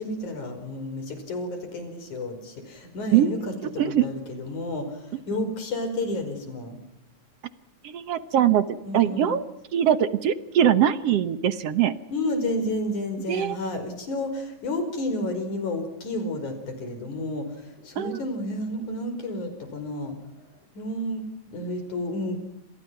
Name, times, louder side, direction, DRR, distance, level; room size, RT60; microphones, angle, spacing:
voice 1, 0.0-6.8 8.8-9.4 12.1-20.1 20.7-22.4, left 1 dB, 80° left, 8 dB, 6.4 m, -31 dB
voice 2, 7.8-9.5 9.7-11.9 13.3-13.6 18.0-18.2, right 10 dB, 60° right, 13 dB, 1.9 m, -22 dB
29.0 x 27.0 x 5.9 m, 0.84 s
omnidirectional pair, 3.4 m